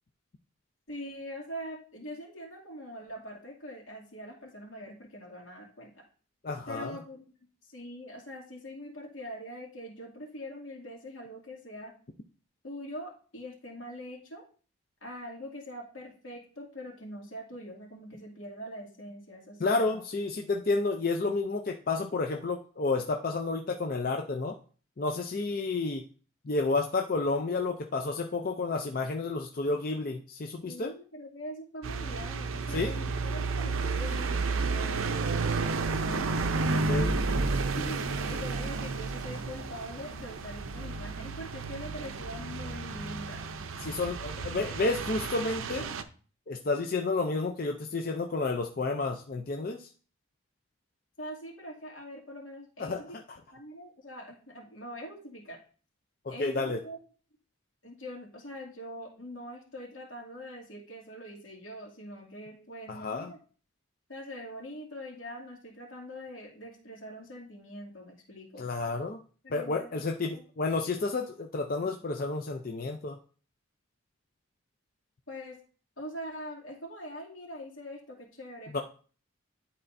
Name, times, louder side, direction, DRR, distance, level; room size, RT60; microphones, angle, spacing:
voice 1, 0.9-6.0 6.7-7.3 7.6-11.9 12.6-14.4 15.0-20.0 30.7-37.2 37.7-43.4 51.2-53.2 53.5-55.6 56.3-57.0 57.8-63.4 64.1-68.7 69.4-70.4 75.3-75.6 76.0-78.8, equal, 80° left, -2 dB, 2.5 m, -43 dB
voice 2, 6.4-7.0 19.6-24.6 25.0-26.0 26.5-30.9 32.7-32.9 36.7-37.1 43.8-45.9 46.5-49.9 52.8-53.0 56.2-56.8 62.9-63.3 68.6-69.2 69.5-73.2 78.7-78.8, left 3 dB, 45° left, 3 dB, 0.5 m, -30 dB
sound 1, 31.8-46.0, right 3 dB, 85° right, 0.6 m, -32 dB
11.0 x 4.2 x 2.6 m, 0.40 s
head